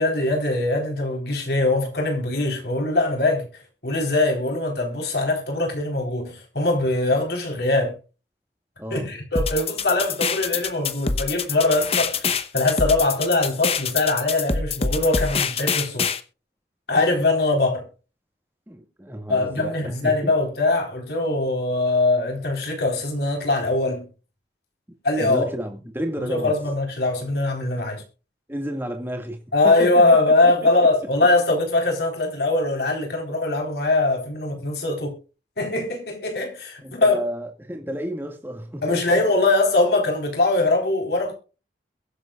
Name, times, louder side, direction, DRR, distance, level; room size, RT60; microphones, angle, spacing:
voice 1, 0.0-3.5 3.8-8.0 8.9-16.1 16.9-17.9 19.3-24.1 25.0-25.5 26.3-28.0 29.5-35.2 35.6-37.2 38.8-41.3, left 2 dB, 65° left, 4.0 m, -22 dB
voice 2, 8.8-9.1 18.7-20.3 25.2-26.6 28.5-30.1 30.4-30.7 36.8-39.2, right 1 dB, 10° right, 1.9 m, -31 dB
sound 1, 9.4-16.2, left 5 dB, 35° left, 0.9 m, -25 dB
22.0 x 7.8 x 2.4 m
head